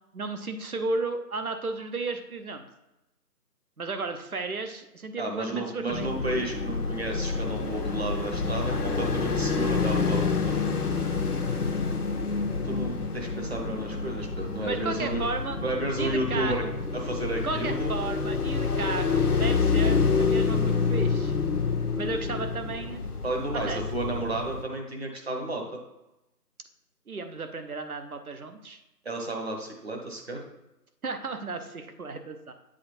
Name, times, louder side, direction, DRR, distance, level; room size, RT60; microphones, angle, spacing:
voice 1, 0.1-2.7 3.8-6.1 14.6-15.6 16.0-16.7 17.4-21.3 21.9-23.0 23.5-23.8 27.1-28.8 31.0-32.5, right 3 dB, 60° right, 7 dB, 0.9 m, -34 dB
voice 2, 5.2-10.6 12.6-15.2 15.6-16.6 16.9-17.9 23.2-25.8 29.0-30.4, right 2 dB, 40° right, 1 dB, 1.1 m, -32 dB
sound 1, 5.9-24.6, left 4 dB, 70° left, 0.9 m, -28 dB
7.6 x 3.7 x 4.4 m, 0.93 s
figure-of-eight pair, 165°, 48 cm